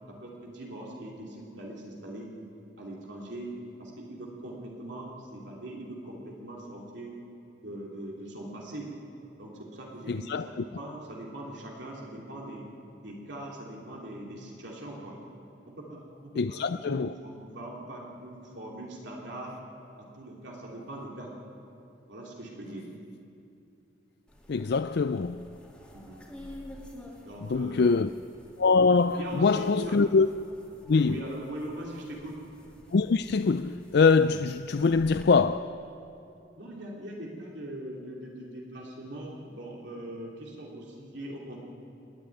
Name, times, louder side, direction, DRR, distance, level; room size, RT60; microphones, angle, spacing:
voice 1, 0.1-2.3 2.8-3.5 3.8-7.1 7.6-8.9 9.4-12.7 13.0-15.2 15.7-16.6 16.9-19.6 20.0-21.3 22.1-22.9 25.9-26.2 27.2-27.9 29.2-29.9 31.1-32.4 36.6-41.6, right 1 dB, 65° right, 3.0 m, -41 dB
voice 2, 10.1-10.6 16.4-17.1 24.5-25.5 27.4-28.1 28.6-30.3 30.9-31.2 32.9-35.8, left 4 dB, 55° left, 0.4 m, -24 dB
sound 1, 24.3-35.2, left 1 dB, 5° left, 2.9 m, -50 dB
29.0 x 10.5 x 9.5 m
head